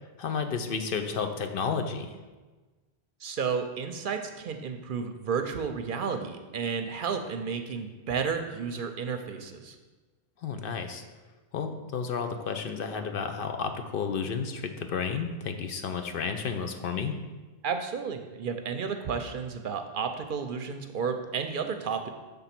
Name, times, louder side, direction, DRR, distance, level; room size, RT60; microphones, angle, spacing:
voice 1, 0.2-2.2 10.4-11.0 11.5-17.1, left 6 dB, 65° left, 6 dB, 0.7 m, -32 dB
voice 2, 3.2-9.8 17.6-22.1, right 6 dB, 60° right, 7 dB, 0.7 m, -32 dB
6.9 x 3.6 x 5.8 m, 1.3 s
omnidirectional pair, 1.1 m